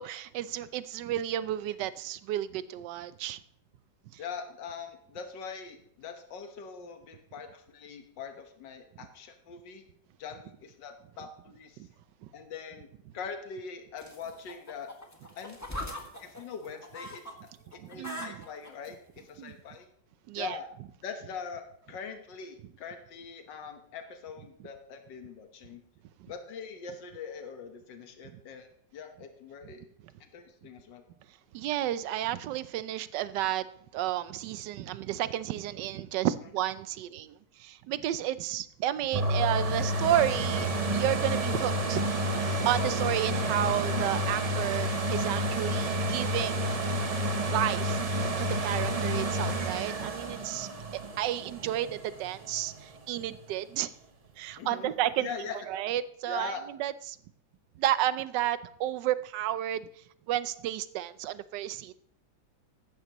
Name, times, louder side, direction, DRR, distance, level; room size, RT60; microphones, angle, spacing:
voice 1, 0.0-3.4 11.8-11.9 12.2-12.3 17.8-18.4 19.4-19.5 20.3-20.6 31.5-33.7 33.9-42.3 42.6-46.8 47.5-53.9 54.4-55.3 55.7-57.2 57.8-59.8 60.3-61.9, right 12 dB, 75° right, 15 dB, 1.2 m, -32 dB
voice 2, 4.2-9.8 10.2-11.9 12.3-12.9 13.1-14.9 15.4-15.8 16.2-17.3 17.7-19.9 20.4-20.7 21.0-25.8 26.3-29.9 30.2-31.0 48.8-49.1 54.6-54.9 55.2-55.7 56.2-56.6, left 6 dB, 70° left, 5 dB, 1.8 m, -42 dB
sound 1, 14.0-17.3 17.7-18.9 19.7-19.8, left 1 dB, 10° left, 1.3 m, -41 dB
sound 2, 39.1-52.8 53.3-53.4, right 1 dB, 40° right, 0.5 m, -30 dB
15.0 x 12.0 x 3.0 m, 0.68 s
omnidirectional pair, 2.0 m